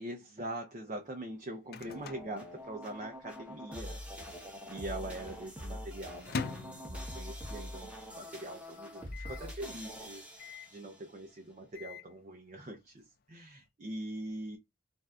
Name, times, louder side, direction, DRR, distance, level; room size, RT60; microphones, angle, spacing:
voice 1, 0.0-4.0 4.7-14.6, right 1 dB, 40° right, 0.5 m, -43 dB
Microwave oven, 1.1-3.3 3.5-3.6 3.9-4.4 4.9-7.6 8.0-8.1 8.3-8.4 9.1-9.5 10.4-10.8 11.5-12.1, left 4 dB, 50° left, 0.3 m, -43 dB
sound 1, 1.9-11.1, equal, 5° right, 0.8 m, -45 dB
2.6 x 2.2 x 3.4 m
head